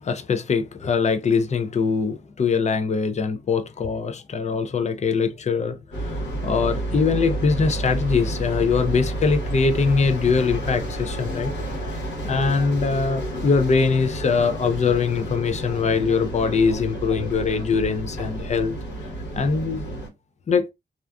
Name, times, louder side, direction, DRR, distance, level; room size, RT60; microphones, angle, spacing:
voice 1, 0.0-11.5 11.9-12.0 12.2-18.8 19.3-19.8 20.5-20.7, left 5 dB, 40° left, 0.4 m, -22 dB
sound 1, 5.9-20.1, right 1 dB, 80° left, 1.1 m, -30 dB
2.4 x 2.4 x 2.2 m
cardioid pair, 70°, 18 cm